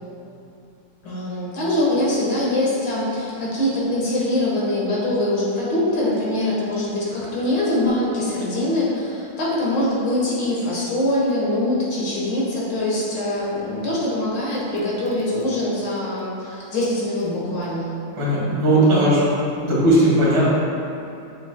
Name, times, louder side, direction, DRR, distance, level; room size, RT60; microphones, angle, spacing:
voice 1, 1.0-17.9, left 1 dB, 60° left, -6 dB, 2.1 m, -23 dB
voice 2, 18.1-19.2 19.6-20.5, right 1 dB, 65° right, -7 dB, 2.5 m, -17 dB
8.1 x 6.7 x 2.2 m, 2.7 s
omnidirectional pair, 2.4 m